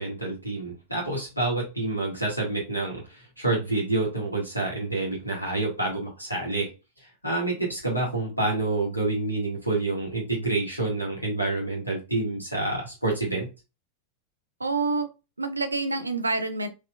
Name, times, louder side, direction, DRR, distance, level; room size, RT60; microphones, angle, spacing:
voice 1, 0.0-6.7 7.0-13.5, right 2 dB, 90° left, 1.6 m, -28 dB
voice 2, 14.6-15.1 15.4-16.7, right 3 dB, 80° right, 0.5 m, -27 dB
4.0 x 2.9 x 2.2 m
figure-of-eight pair, 90°, 0 cm